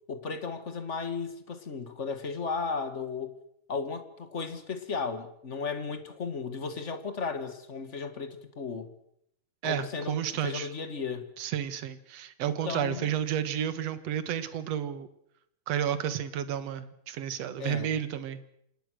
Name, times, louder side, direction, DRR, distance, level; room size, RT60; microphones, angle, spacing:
voice 1, 0.1-3.3 3.7-8.9 9.6-11.3 12.6-13.1 17.6-17.9, left 5 dB, 30° left, 10 dB, 1.6 m, -35 dB
voice 2, 9.6-10.7 11.4-15.1 15.7-18.4, right 9 dB, 60° right, 12 dB, 2.4 m, -31 dB
26.5 x 19.5 x 6.4 m, 0.74 s
omnidirectional pair, 3.6 m